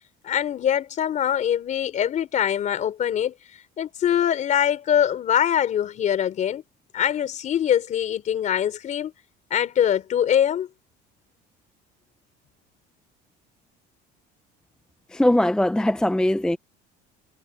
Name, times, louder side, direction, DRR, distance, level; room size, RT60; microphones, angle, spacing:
voice 1, 0.2-3.3 3.8-6.6 6.9-9.1 9.5-10.7, left 9 dB, 40° left, 4.4 m, -23 dB
voice 2, 15.1-16.6, left 1 dB, 5° left, 0.7 m, -20 dB
cardioid pair, 155°, 19 cm